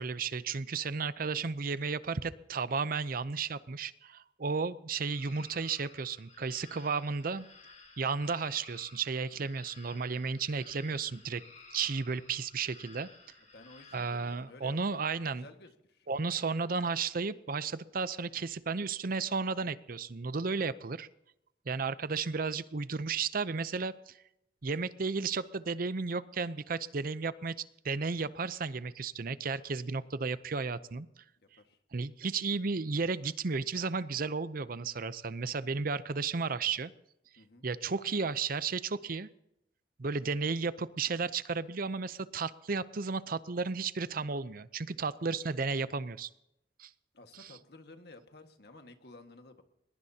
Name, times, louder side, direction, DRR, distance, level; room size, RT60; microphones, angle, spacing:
voice 1, 0.0-7.5 8.0-11.4 11.7-13.1 13.9-15.5 16.1-21.1 21.7-24.1 24.6-27.5 27.8-31.1 31.9-36.9 37.6-39.3 40.0-46.3 46.8-46.9 47.4-47.5, right 4 dB, 55° right, 15 dB, 0.6 m, -33 dB
sound 1, 5.1-14.4, left 4 dB, 45° left, 5.8 m, -55 dB
voice 2, 11.0-11.3 13.4-15.0 15.3-16.1 31.6-31.8 37.4-37.6 47.1-49.6, left 2 dB, 65° left, 6 dB, 1.7 m, -53 dB
22.0 x 21.0 x 2.9 m, 0.84 s
head